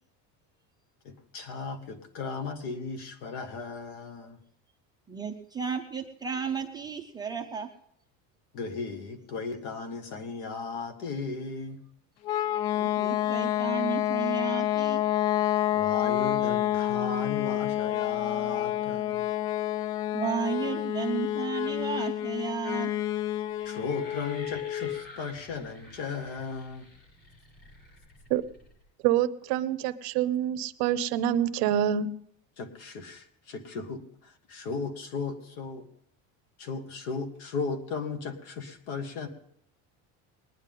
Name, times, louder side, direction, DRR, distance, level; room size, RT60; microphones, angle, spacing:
voice 1, 1.0-4.4 8.5-11.8 15.7-19.3 23.7-26.9 32.6-35.9 36.6-39.3, left 4 dB, 65° left, 1.9 m, -36 dB
voice 2, 5.1-7.7 12.8-15.0 20.1-22.9, right 7 dB, 10° right, 0.4 m, -33 dB
sound 1, 12.2-25.0, left 12 dB, 50° left, 0.4 m, -28 dB
sound 2, 23.5-28.8, left 1 dB, 30° left, 7.5 m, -50 dB
voice 3, 29.0-32.1, right 10 dB, 55° right, 0.7 m, -26 dB
20.5 x 9.9 x 3.7 m
cardioid pair, 180°, 35 cm